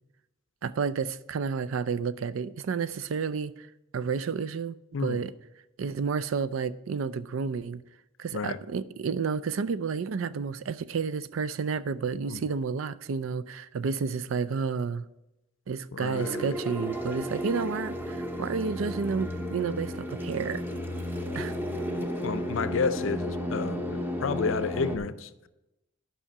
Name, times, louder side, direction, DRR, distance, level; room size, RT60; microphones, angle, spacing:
voice 1, 0.6-3.7 3.9-5.3 5.8-7.8 8.2-15.0 15.7-20.6 21.3-21.6, right 5 dB, 80° right, 0.4 m, -31 dB
voice 2, 15.9-16.5 22.2-25.5, left 5 dB, 70° left, 0.5 m, -31 dB
sound 1, 16.1-25.0, equal, 10° right, 0.8 m, -33 dB
10.0 x 5.6 x 5.8 m
head